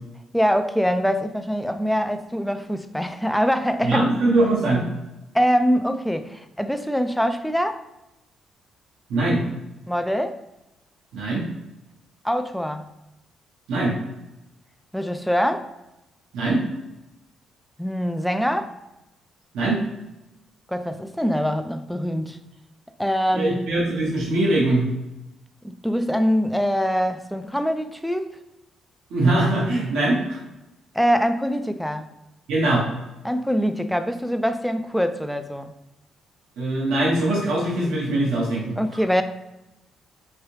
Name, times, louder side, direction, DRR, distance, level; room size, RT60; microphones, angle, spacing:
voice 1, 0.3-4.1 5.3-7.8 9.9-10.4 12.2-12.9 14.9-15.7 17.8-18.7 20.7-22.4 23.0-23.8 25.6-28.3 30.9-32.1 33.2-35.7 38.8-39.2, equal, ahead, 8 dB, 0.3 m, -23 dB
voice 2, 3.8-4.8 9.1-9.4 11.1-11.4 13.7-13.9 16.3-16.6 19.5-19.8 23.3-24.9 29.1-30.4 32.5-32.9 36.6-39.0, right 2 dB, 85° right, -4 dB, 1.0 m, -22 dB
3.2 x 2.7 x 3.0 m, 0.92 s
cardioid pair, 90°, 0 cm